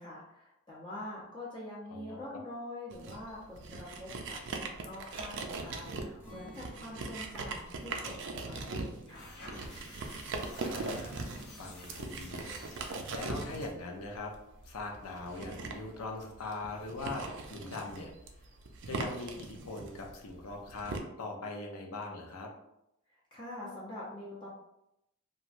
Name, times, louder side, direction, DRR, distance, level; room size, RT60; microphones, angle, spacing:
voice 1, 0.0-9.3 23.1-24.5, left 1 dB, 25° left, -7 dB, 0.6 m, -45 dB
voice 2, 1.9-2.4 10.6-14.3 14.6-18.1 18.9-22.5, left 3 dB, 85° left, 2 dB, 0.6 m, -41 dB
sound 1, 2.9-21.0, right 3 dB, 55° right, 0.4 m, -40 dB
Acoustic guitar, 6.2-12.1 12.4-12.6 13.1-13.5, left 1 dB, 5° right, 0.8 m, -59 dB
sound 2, 8.9-13.4, left 2 dB, 50° left, 0.8 m, -51 dB
3.0 x 2.3 x 2.5 m, 0.83 s
head